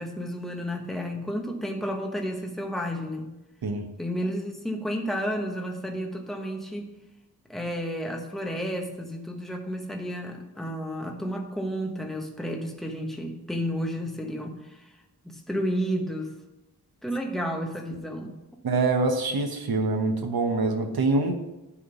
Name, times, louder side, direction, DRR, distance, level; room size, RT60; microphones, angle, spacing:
voice 1, 0.0-3.3 4.0-6.9 7.5-14.8 15.2-16.3 17.0-18.3, equal, ahead, 2 dB, 1.1 m, -31 dB
voice 2, 18.6-21.3, right 3 dB, 70° right, 5 dB, 1.2 m, -25 dB
10.0 x 3.7 x 7.0 m, 1.0 s
wide cardioid pair, 110°, 38 cm